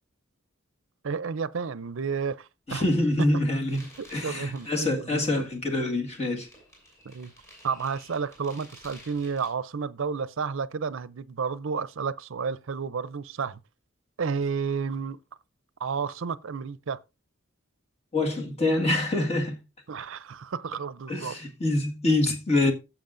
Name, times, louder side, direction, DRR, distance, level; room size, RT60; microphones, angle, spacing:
voice 1, 1.0-2.8 4.0-5.5 7.0-7.3 7.6-13.6 14.2-15.2 15.8-17.0 19.9-21.4, right 5 dB, 65° right, 0.5 m, -31 dB
voice 2, 2.7-6.5 18.1-19.6 21.1-22.7, left 2 dB, 30° left, 1.8 m, -25 dB
sound 1, 3.7-9.5, equal, 15° left, 6.0 m, -52 dB
16.0 x 7.3 x 2.5 m
head